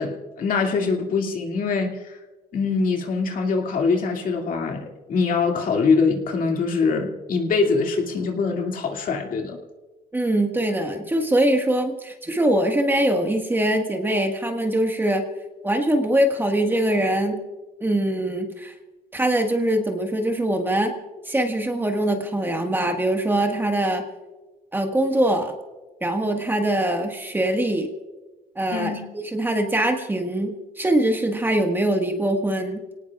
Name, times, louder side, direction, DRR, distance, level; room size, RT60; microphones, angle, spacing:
voice 1, 0.0-2.2 2.5-9.6 28.7-29.1, left 4 dB, 55° left, 2 dB, 2.3 m, -23 dB
voice 2, 10.1-15.2 15.6-17.4 17.8-18.7 19.1-20.9 21.3-24.0 24.7-25.5 26.0-27.9 28.5-32.8, right 1 dB, 10° right, 3 dB, 1.6 m, -22 dB
28.5 x 18.5 x 2.4 m, 1.2 s
cardioid pair, 110°, 17 cm